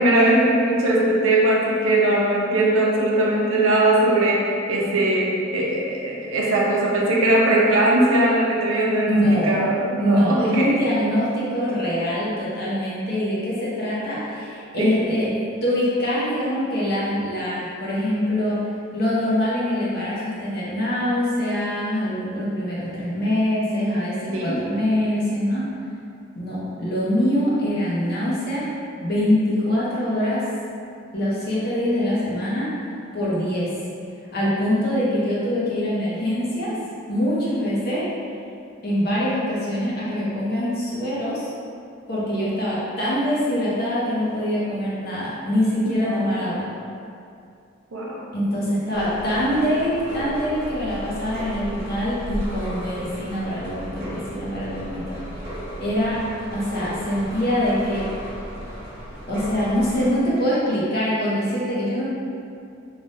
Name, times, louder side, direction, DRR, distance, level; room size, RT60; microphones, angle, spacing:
voice 1, 0.0-10.8 14.8-15.0 24.3-24.6 45.9-46.3 47.9-48.3, right 1 dB, 85° right, -3 dB, 0.5 m, -20 dB
voice 2, 9.1-9.6 10.0-15.3 15.6-18.6 18.9-25.7 26.4-28.7 29.0-30.4 31.1-32.7 33.1-33.7 34.3-36.7 37.1-38.0 38.8-41.5 42.1-46.7 48.3-55.2 55.8-56.2 56.5-58.1 59.3-62.1, equal, 50° left, -8 dB, 0.7 m, -24 dB
sound 1, 48.9-60.1, equal, 35° right, 1.1 m, -35 dB
3.2 x 2.2 x 2.6 m, 2.5 s
head